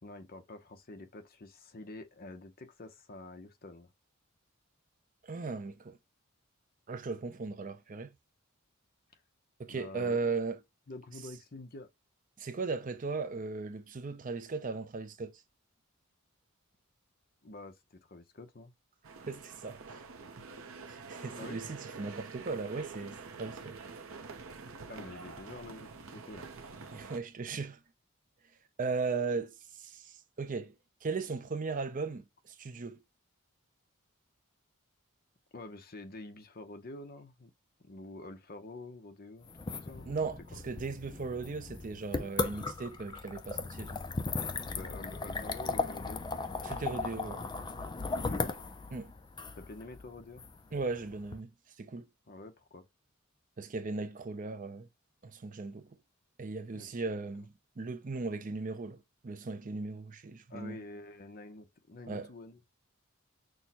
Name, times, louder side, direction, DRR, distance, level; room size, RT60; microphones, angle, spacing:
voice 1, 0.0-3.9 9.7-10.2 10.9-11.9 17.4-17.8 18.1-18.7 21.4-21.6 24.9-26.5 35.5-37.5 37.8-40.1 40.5-40.6 44.7-46.3 48.2-48.6 49.6-50.4 52.3-52.8 56.7-56.9 60.5-62.6, left 2 dB, 45° left, 0.8 m, -47 dB
voice 2, 5.2-6.0 6.9-8.1 9.6-10.6 12.4-15.3 19.3-20.0 20.9-23.8 26.9-27.8 28.8-30.7 31.0-33.0 40.1-44.0 46.6-47.4 48.9-49.1 50.7-51.5 51.8-52.1 53.6-54.9 55.2-55.9 56.4-60.8 62.1-62.3, right 4 dB, 40° right, 0.5 m, -37 dB
sound 1, 19.0-27.2, right 4 dB, 70° right, 0.7 m, -47 dB
sound 2, 39.5-51.4, left 3 dB, 20° left, 0.4 m, -37 dB
6.2 x 2.2 x 2.8 m
head